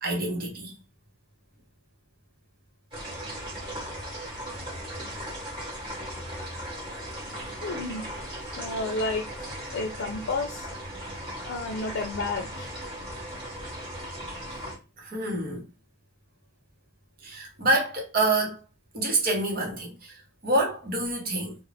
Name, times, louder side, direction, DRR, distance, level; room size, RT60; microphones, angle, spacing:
voice 1, 0.0-0.7 15.0-15.7 17.2-18.6 18.9-21.6, right 2 dB, 45° right, 0.8 m, -27 dB
sound 1, 2.9-14.8, equal, 25° right, 1.2 m, -37 dB
voice 2, 7.6-8.0 8.5-9.3 9.7-10.7 11.5-12.7, left 3 dB, 85° left, 0.5 m, -31 dB
2.4 x 2.1 x 3.2 m
head